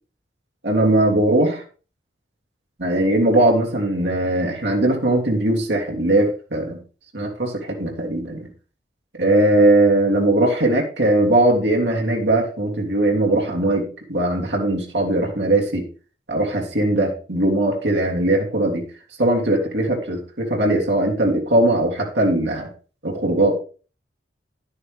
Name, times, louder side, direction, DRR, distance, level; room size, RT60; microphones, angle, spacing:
voice 1, 0.6-1.6 2.8-6.8 7.1-8.5 9.2-15.8 16.3-18.8 19.2-22.7 23.0-23.6, right 1 dB, 80° right, -1 dB, 3.0 m, -19 dB
10.5 x 9.5 x 3.5 m, 0.37 s
head